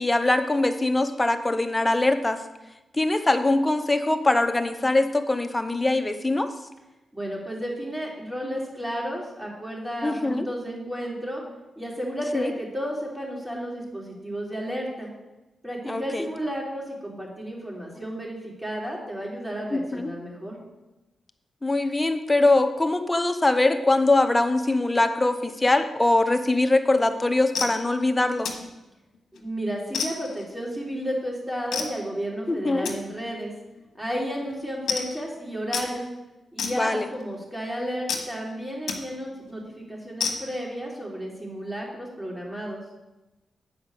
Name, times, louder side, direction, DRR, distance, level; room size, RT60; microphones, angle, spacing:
voice 1, 0.0-2.4 2.9-6.5 10.0-10.5 12.3-12.5 15.9-16.3 19.7-20.1 21.6-28.5 32.5-32.9 36.8-37.1, left 2 dB, 20° left, 8 dB, 0.8 m, -22 dB
voice 2, 7.1-11.4 11.8-15.1 15.6-20.6 29.3-33.5 33.9-36.1 36.5-42.8, equal, 10° right, -3 dB, 3.4 m, -32 dB
sound 1, 27.0-27.1 27.5-27.8 28.4-28.7 29.1-29.4 29.9-30.4 31.7-32.0 32.8-33.0 33.7-33.8 34.1-34.2 34.4-34.6 34.9-35.2 35.7-35.9 36.6-37.2 38.1-38.3 38.9-39.0 39.4-39.5 40.2-40.6, left 5 dB, 80° left, 1.2 m, -30 dB
8.7 x 5.0 x 6.6 m, 1.0 s
cardioid pair, 60°, 0 cm